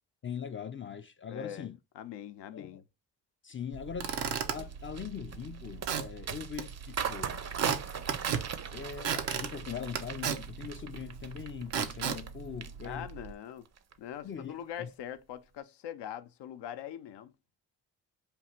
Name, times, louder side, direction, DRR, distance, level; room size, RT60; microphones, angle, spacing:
voice 1, 0.2-1.8 2.5-2.8 3.4-7.5 8.7-13.1 14.2-14.9, left 7 dB, 30° left, 0.4 m, -41 dB
voice 2, 1.3-2.8 12.8-13.7 14.0-17.3, left 10 dB, 75° left, 0.6 m, -42 dB
Squeak / Wood, 3.7-13.3, right 7 dB, 85° right, 0.6 m, -37 dB
sound 1, 4.0-12.3 12.6-13.3 13.7-13.9, right 7 dB, 40° right, 0.5 m, -39 dB
3.4 x 2.4 x 4.3 m
supercardioid pair, 45°, 42 cm